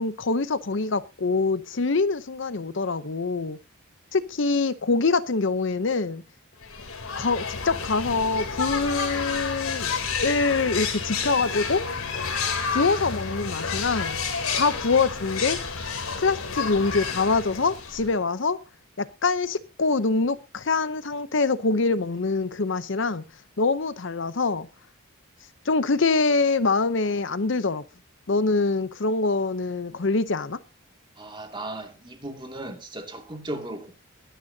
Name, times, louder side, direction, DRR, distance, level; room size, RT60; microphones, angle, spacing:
voice 1, 0.0-3.6 4.1-6.2 7.2-9.9 10.2-11.8 12.7-14.2 14.5-15.6 16.2-18.6 19.0-23.2 23.6-24.7 25.7-27.8 28.3-30.6, left 3 dB, 60° left, 0.7 m, -24 dB
sound 1, 6.6-18.2, left 5 dB, 85° left, 3.2 m, -30 dB
voice 2, 31.2-33.9, right 1 dB, 20° right, 2.3 m, -36 dB
22.5 x 10.0 x 2.8 m
head